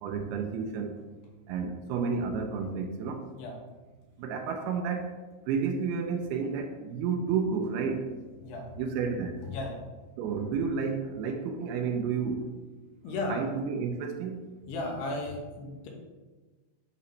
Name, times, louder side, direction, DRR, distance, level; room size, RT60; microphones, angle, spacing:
voice 1, 0.0-1.0 1.5-3.3 4.2-5.1 5.5-8.1 8.8-9.4 10.2-12.5 13.3-14.4, right 5 dB, 85° right, 4 dB, 2.5 m, -31 dB
voice 2, 9.5-9.8 13.0-13.4 14.7-15.9, left 2 dB, 85° left, 0 dB, 3.2 m, -34 dB
9.7 x 4.0 x 3.1 m, 1.3 s
omnidirectional pair, 4.6 m